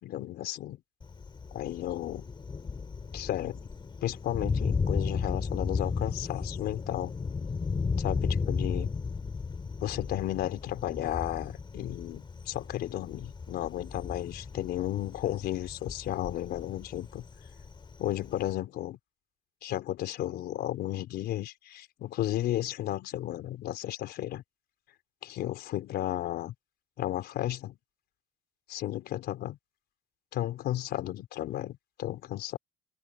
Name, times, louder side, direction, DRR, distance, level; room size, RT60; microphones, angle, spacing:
voice 1, 0.0-0.8 1.5-2.3 3.1-3.6 4.0-7.1 8.0-8.9 9.8-17.2 18.0-19.0 19.6-24.4 25.2-26.5 27.0-27.8 28.7-29.6 30.3-32.6, left 13 dB, 75° left, 4.2 m, -33 dB
Thunder, 1.0-18.5, left 5 dB, 30° left, 3.6 m, -35 dB
open air
cardioid pair, 110°, 17 cm